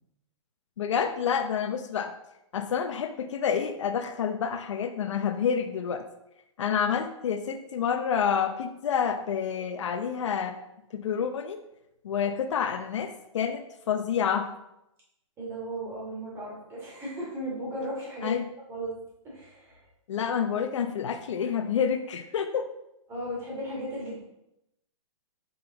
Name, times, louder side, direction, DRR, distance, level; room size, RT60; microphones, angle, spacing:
voice 1, 0.8-2.2 2.5-6.1 6.6-10.6 10.9-11.6 12.0-14.5 18.2-18.4 20.1-22.7, left 7 dB, 65° left, 8 dB, 0.7 m, -28 dB
voice 2, 15.4-18.4 18.7-18.9 19.2-19.8 23.1-24.1, right 1 dB, 15° right, -5 dB, 2.6 m, -36 dB
5.8 x 5.4 x 3.9 m, 0.84 s
hypercardioid pair, 160°, 16 cm